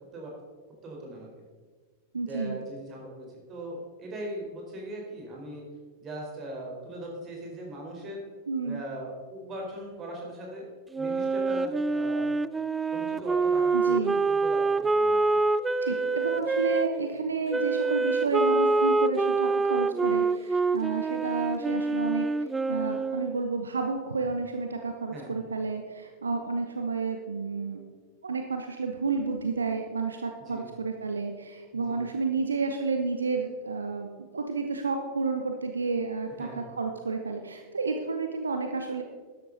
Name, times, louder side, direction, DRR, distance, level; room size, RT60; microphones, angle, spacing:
voice 1, 0.8-1.3 2.3-5.6 6.0-8.2 8.6-10.7 11.0-12.3 12.9-15.2 25.1-25.4 30.4-30.7 31.7-32.0 36.4-36.7, right 1 dB, 30° right, -1 dB, 4.4 m, -39 dB
voice 2, 2.1-2.6 8.5-8.8 13.7-14.2 15.8-22.3 22.7-27.8 28.2-34.1 34.3-39.0, right 4 dB, 75° right, 5 dB, 0.9 m, -31 dB
Wind instrument woodwind instrument, 10.9-16.9 17.5-23.4, right 3 dB, 10° right, 0.3 m, -26 dB
12.5 x 11.0 x 4.0 m, 1.5 s
figure-of-eight pair, 90°, 0 cm